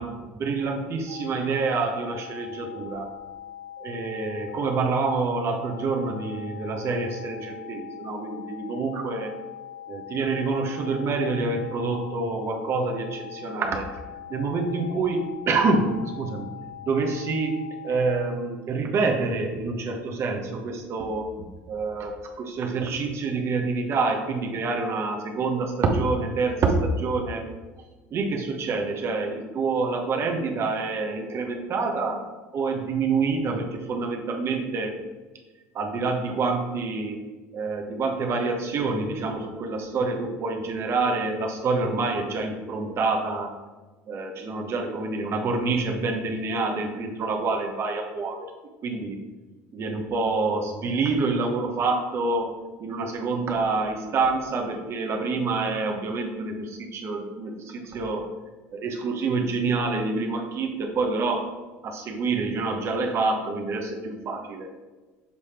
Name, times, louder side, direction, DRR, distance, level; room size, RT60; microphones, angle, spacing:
voice 1, 0.0-3.1 3.8-9.3 9.9-13.9 14.3-16.5 16.8-21.3 21.7-27.5 28.1-32.2 32.5-35.0 35.7-37.2 37.5-43.5 44.1-48.5 48.8-49.2 49.7-58.2 58.7-61.5 61.8-64.7, right 3 dB, 50° right, 2 dB, 1.0 m, -27 dB
sound 1, 1.1-18.2, left 10 dB, 85° left, 1.2 m, -42 dB
6.9 x 3.3 x 4.3 m, 1.2 s
supercardioid pair, 90°, 6 cm